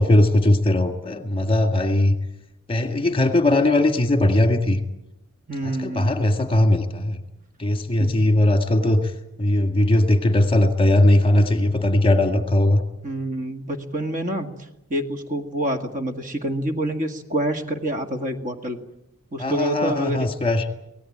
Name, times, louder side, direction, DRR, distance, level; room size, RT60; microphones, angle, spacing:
voice 1, 0.0-2.2 2.7-4.8 5.6-7.2 7.6-9.0 9.4-12.8 19.4-20.7, left 1 dB, 25° left, 7 dB, 1.9 m, -19 dB
voice 2, 5.5-6.1 8.0-8.1 13.0-14.5 14.9-18.8 19.3-20.3, right 1 dB, 40° right, 6 dB, 1.9 m, -27 dB
24.5 x 18.0 x 8.7 m, 0.87 s
head